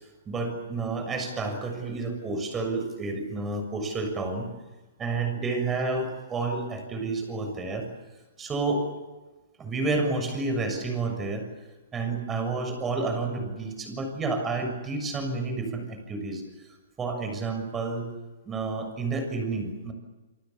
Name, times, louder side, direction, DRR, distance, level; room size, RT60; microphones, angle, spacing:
voice 1, 0.3-4.5 5.0-7.9 8.4-8.9 9.6-11.4 11.9-16.4 17.0-18.1 18.5-19.9, right 3 dB, 15° right, 6 dB, 6.7 m, -30 dB
28.5 x 24.0 x 7.2 m, 1.2 s
hypercardioid pair, 150°, 0 cm